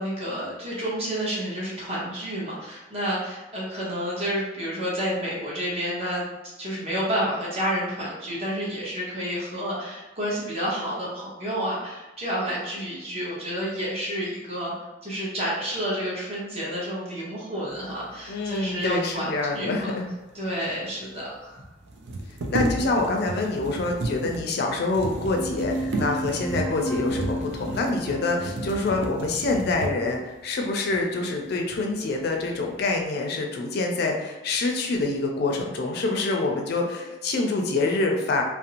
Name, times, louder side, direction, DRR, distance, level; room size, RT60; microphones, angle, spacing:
voice 1, 0.0-14.7 15.0-19.9 20.3-21.6, equal, 35° right, -6 dB, 0.9 m, -30 dB
voice 2, 18.3-20.1 22.5-38.4, left 3 dB, 60° left, 2 dB, 0.4 m, -26 dB
sound 1, 20.4-20.5 20.7-20.8 21.9-30.2 30.9-31.0 31.5-32.1 32.5-33.0, right 1 dB, 75° right, 0.4 m, -32 dB
sound 2, 25.3-30.3, right 1 dB, 10° left, 1.1 m, -34 dB
2.5 x 2.0 x 2.8 m, 1.1 s
head